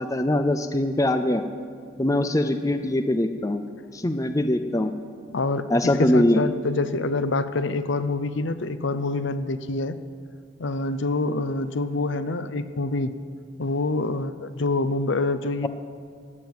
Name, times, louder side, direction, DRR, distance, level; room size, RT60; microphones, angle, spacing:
voice 1, 0.0-1.4 2.0-3.6 3.9-4.9 5.7-6.4, left 1 dB, 15° left, 8 dB, 0.5 m, -22 dB
voice 2, 5.3-5.7 6.1-10.0 10.6-13.1 13.6-15.7, left 2 dB, 60° left, 12 dB, 0.6 m, -26 dB
16.0 x 7.7 x 9.4 m, 2.1 s
head